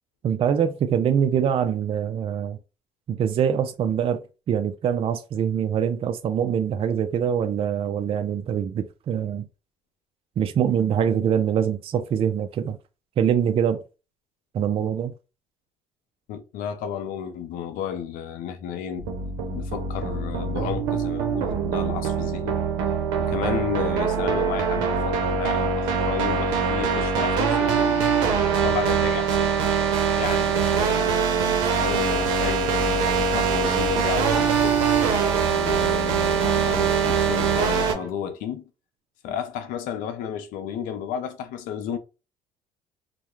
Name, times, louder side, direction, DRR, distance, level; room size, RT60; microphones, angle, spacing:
voice 1, 0.2-2.6 3.1-4.2 4.5-9.5 10.4-12.8 13.2-13.8 14.5-15.1, right 8 dB, 45° right, 0.4 m, -24 dB
voice 2, 16.3-22.6 23.2-28.1 28.6-29.5 30.2-34.8 35.4-38.6 39.2-42.0, left 8 dB, 75° left, 0.5 m, -32 dB
sound 1, 19.0-37.9, right 6 dB, 90° right, 0.6 m, -23 dB
sound 2, 32.0-38.1, equal, 30° left, 1.1 m, -38 dB
2.3 x 2.1 x 3.0 m
supercardioid pair, 80°, 14 cm